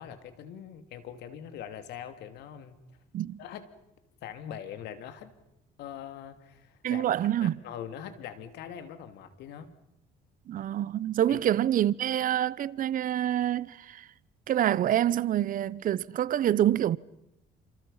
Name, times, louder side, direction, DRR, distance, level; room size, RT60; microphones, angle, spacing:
voice 1, 0.0-2.8 3.4-3.7 4.2-5.3 5.8-7.0 7.4-9.7 11.3-11.4, left 9 dB, 80° left, 2.9 m, -42 dB
voice 2, 6.8-7.5 10.5-14.0 14.5-17.0, right 11 dB, 55° right, 0.8 m, -26 dB
29.5 x 27.0 x 5.7 m
cardioid pair, 110°, 17 cm